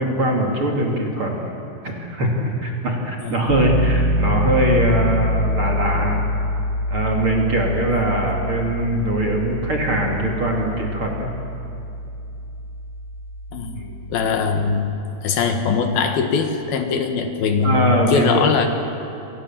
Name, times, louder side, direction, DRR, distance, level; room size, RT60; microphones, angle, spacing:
voice 1, 0.0-1.3 1.8-6.2 6.9-11.3 13.7-13.9 17.6-18.5, right 1 dB, 35° right, 0 dB, 3.0 m, -21 dB
Piano, 3.5-14.3, left 1 dB, 85° right, 4.2 m, -25 dB
voice 2, 14.1-14.9 15.2-18.7, left 5 dB, 70° left, 5 dB, 3.2 m, -21 dB
28.5 x 24.5 x 7.4 m, 2.8 s
omnidirectional pair, 4.8 m